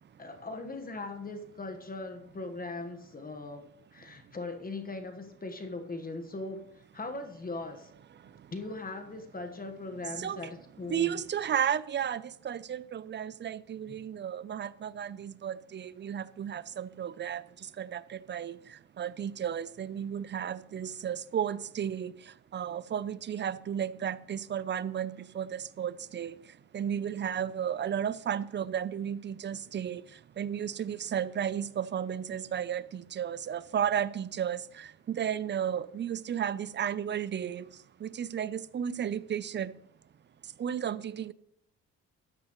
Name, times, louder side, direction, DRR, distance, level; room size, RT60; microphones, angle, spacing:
voice 1, 0.2-3.6 3.9-6.6 6.9-7.9 8.5-11.1 13.9-14.0, left 3 dB, 30° left, 1.3 m, -39 dB
voice 2, 8.1-8.5 10.1-10.5 10.9-39.8 40.4-41.3, right 9 dB, 35° right, 0.5 m, -34 dB
13.5 x 9.5 x 3.1 m
cardioid pair, 90°, 30 cm